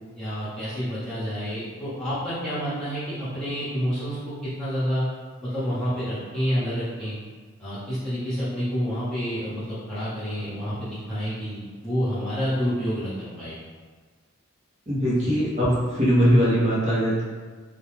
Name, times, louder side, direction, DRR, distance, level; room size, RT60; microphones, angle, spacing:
voice 1, 0.2-4.3 4.6-5.0 5.4-7.2 7.6-13.6 15.2-15.4, equal, ahead, -14 dB, 1.1 m, -28 dB
voice 2, 14.9-17.2, equal, 30° right, -8 dB, 0.8 m, -21 dB
2.3 x 2.3 x 3.2 m, 1.5 s
head